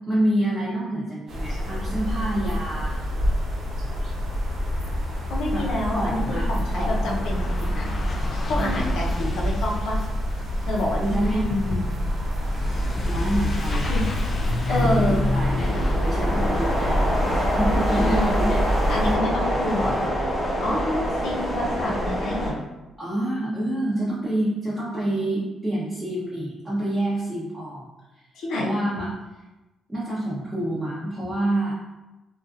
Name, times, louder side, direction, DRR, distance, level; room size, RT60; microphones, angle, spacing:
voice 1, 0.1-3.0 5.5-5.7 5.9-7.2 8.5-8.9 11.0-11.5 13.0-14.0 14.6-18.8 23.0-27.9 28.1-28.3 28.5-29.1 29.9-31.7, right 1 dB, 15° right, -8 dB, 0.7 m, -27 dB
sound 1, 1.3-19.2, equal, 60° right, 0.6 m, -27 dB
Truck / Accelerating revving vroom, 3.3-3.4 3.5-16.9, left 2 dB, 45° left, 0.4 m, -33 dB
voice 2, 5.3-7.9 8.5-10.0 10.7-11.8 13.9-14.0 14.7-15.2 17.9-18.4 18.9-20.1 20.6-22.5 28.4-28.8, left 1 dB, 75° left, -3 dB, 0.6 m, -28 dB
sound 2, 9.8-22.5, equal, 20° left, 0.9 m, -27 dB
2.5 x 2.3 x 2.5 m, 1.0 s
cardioid pair, 90°, 0 cm